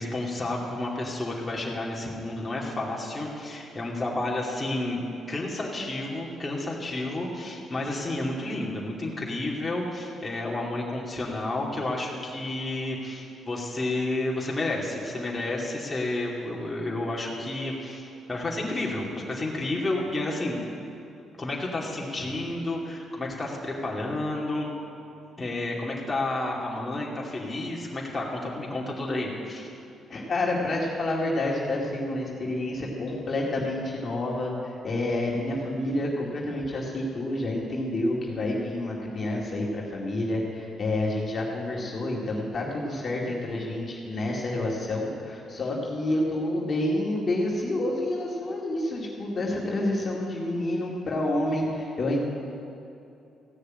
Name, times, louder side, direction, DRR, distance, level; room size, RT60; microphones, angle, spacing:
voice 1, 0.0-20.6 21.4-24.7 25.4-29.7, left 2 dB, 20° left, -4 dB, 2.6 m, -31 dB
voice 2, 30.1-52.2, left 1 dB, 45° left, -3 dB, 2.4 m, -28 dB
16.0 x 6.7 x 8.9 m, 2.7 s
cardioid pair, 90°, 0 cm